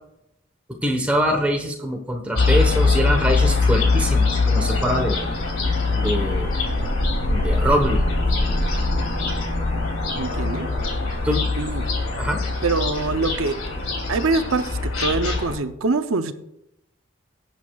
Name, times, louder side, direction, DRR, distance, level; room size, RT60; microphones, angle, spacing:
voice 1, 0.8-5.2 5.9-6.5 7.3-8.0 11.2-11.4 12.2-12.4, equal, 5° right, 1 dB, 1.1 m, -23 dB
sound 1, 2.3-15.6, left 3 dB, 90° left, 2.7 m, -22 dB
voice 2, 10.1-10.7 11.6-11.9 12.6-13.5 14.1-16.3, right 3 dB, 85° right, 9 dB, 0.7 m, -24 dB
22.0 x 7.9 x 2.4 m, 0.82 s
head